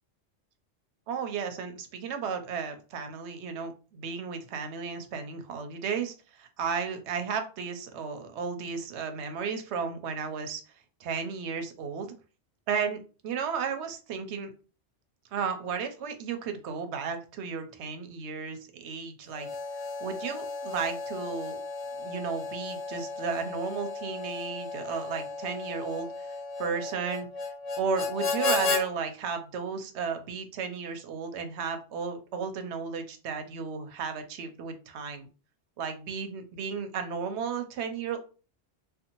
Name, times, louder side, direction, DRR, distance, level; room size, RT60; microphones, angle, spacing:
voice 1, 1.1-10.6 11.0-12.1 12.7-14.5 15.3-19.5 20.0-21.6 22.0-26.3 26.6-27.3 27.8-35.3 35.8-38.2, right 6 dB, 75° right, 7 dB, 0.8 m, -34 dB
Harmonica, 19.3-28.8, left 4 dB, 70° left, 0.3 m, -34 dB
2.6 x 2.4 x 2.8 m, 0.35 s
omnidirectional pair, 1.2 m